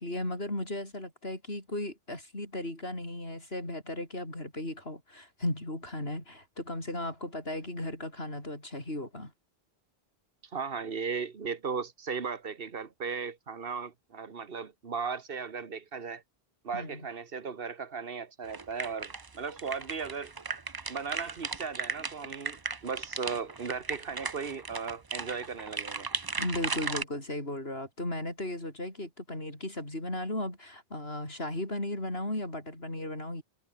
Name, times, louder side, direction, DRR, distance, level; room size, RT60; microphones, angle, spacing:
voice 1, 0.0-9.3 16.7-17.1 26.4-33.4, left 1 dB, 75° left, 7.6 m, -36 dB
voice 2, 10.5-16.2 16.6-20.3 20.9-26.1, right 5 dB, 65° right, 1.7 m, -36 dB
sound 1, 18.4-27.0, right 4 dB, 25° right, 0.6 m, -37 dB
omnidirectional pair, 1.0 m